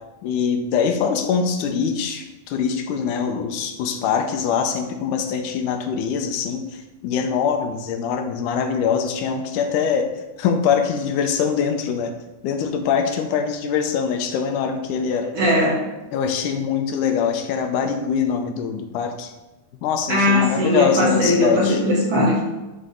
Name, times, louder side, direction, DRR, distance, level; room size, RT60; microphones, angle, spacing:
voice 1, 0.2-10.1 10.4-12.1 12.4-15.3 16.1-19.3 19.8-21.8, left 6 dB, 80° left, 5 dB, 2.1 m, -23 dB
voice 2, 15.3-15.8 20.1-22.4, left 1 dB, 55° right, -4 dB, 2.2 m, -19 dB
9.3 x 4.0 x 3.8 m, 1.1 s
omnidirectional pair, 3.6 m